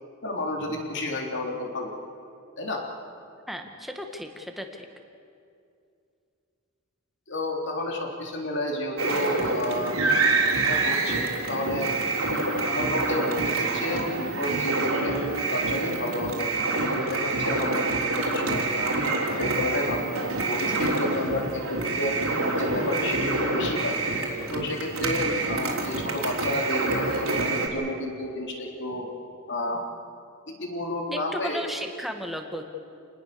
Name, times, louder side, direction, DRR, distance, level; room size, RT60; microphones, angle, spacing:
voice 1, 0.2-1.9 2.6-2.8 7.3-10.0 10.7-11.9 12.6-15.1 15.5-16.5 16.8-19.0 19.4-22.2 22.6-24.0 24.5-27.1 27.4-29.1 29.5-29.8 30.5-31.6, left 1 dB, 55° left, 1 dB, 3.6 m, -31 dB
voice 2, 3.5-4.9 31.1-32.7, equal, ahead, 4 dB, 1.7 m, -35 dB
sound 1, 9.0-27.7, right 3 dB, 75° right, 3.5 m, -26 dB
28.5 x 19.5 x 6.9 m, 2.5 s
head